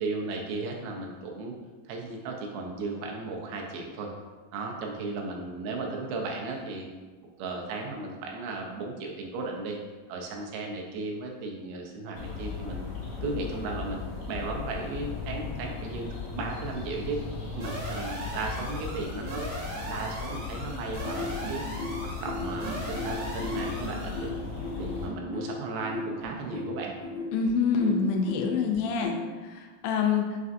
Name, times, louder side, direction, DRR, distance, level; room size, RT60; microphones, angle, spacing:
voice 1, 0.0-1.5 1.9-4.1 4.5-6.9 7.4-9.8 10.1-12.9 13.2-17.2 17.5-19.5 19.9-21.6 22.0-24.3 24.8-26.9, right 3 dB, 90° right, 1 dB, 2.5 m, -35 dB
sound 1, 12.1-25.1, left 5 dB, 50° left, 2.1 m, -37 dB
sound 2, 17.6-24.3, equal, 65° right, 1.9 m, -39 dB
sound 3, 21.0-29.3, left 2 dB, 70° left, 2.1 m, -36 dB
voice 2, 27.3-29.2 29.4-30.4, left 5 dB, 85° left, 2 dB, 2.3 m, -26 dB
6.1 x 2.5 x 2.5 m, 1.3 s
omnidirectional pair, 4.3 m